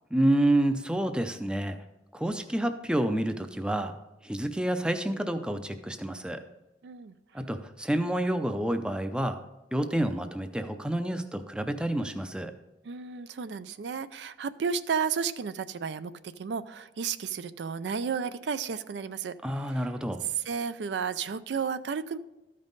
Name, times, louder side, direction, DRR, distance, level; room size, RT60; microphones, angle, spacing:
voice 1, 0.1-1.8 2.1-4.0 4.2-6.4 7.3-9.4 9.7-12.5 19.4-20.2, right 1 dB, 5° right, 8 dB, 0.5 m, -28 dB
voice 2, 6.8-7.1 12.8-19.9 20.2-22.2, right 6 dB, 75° right, 13 dB, 0.4 m, -33 dB
13.0 x 5.4 x 3.9 m, 0.98 s
head